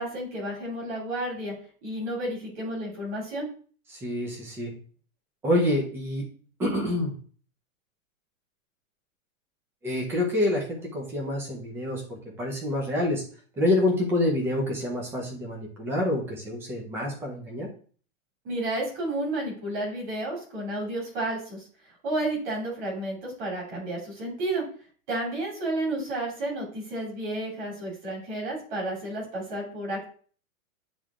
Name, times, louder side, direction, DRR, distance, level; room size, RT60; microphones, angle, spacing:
voice 1, 0.0-1.5 1.8-3.5 18.4-21.6 22.0-24.7 25.1-30.0, right 1 dB, 35° right, -3 dB, 3.0 m, -31 dB
voice 2, 4.0-4.7 5.4-6.3 6.6-7.1 9.8-10.6 10.9-13.2 13.6-17.7, left 1 dB, 5° right, -1 dB, 0.7 m, -27 dB
9.4 x 3.3 x 3.6 m, 0.44 s
supercardioid pair, 180°, 41 cm